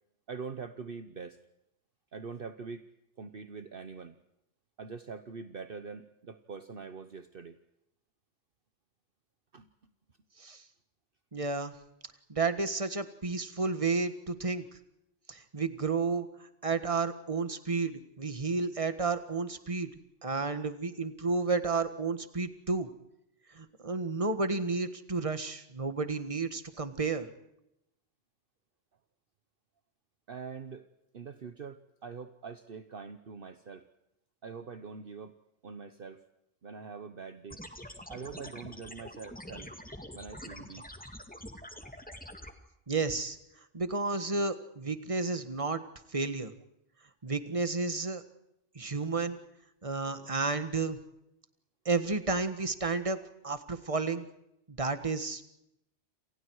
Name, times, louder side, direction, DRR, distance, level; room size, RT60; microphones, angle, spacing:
voice 1, 0.3-1.4 2.1-2.9 3.2-4.2 4.8-7.6 9.5-9.7 30.3-30.9 31.1-33.9 34.4-35.4 35.6-36.2 36.6-37.6 38.1-39.7 40.1-40.9 49.9-50.4 53.2-53.3, right 5 dB, 50° right, 10 dB, 1.1 m, -44 dB
voice 2, 11.3-11.7 12.3-14.6 15.3-16.3 16.6-19.9 20.2-22.9 23.5-27.3 42.9-43.4 43.7-45.8 46.1-46.5 47.2-48.2 48.7-49.4 49.8-51.0 51.8-53.2 53.4-54.2 54.7-55.4, right 4 dB, 30° right, 10 dB, 1.6 m, -31 dB
sound 1, 37.5-42.5, left 1 dB, 5° left, 2.1 m, -46 dB
29.0 x 28.0 x 4.7 m, 0.84 s
omnidirectional pair, 1.2 m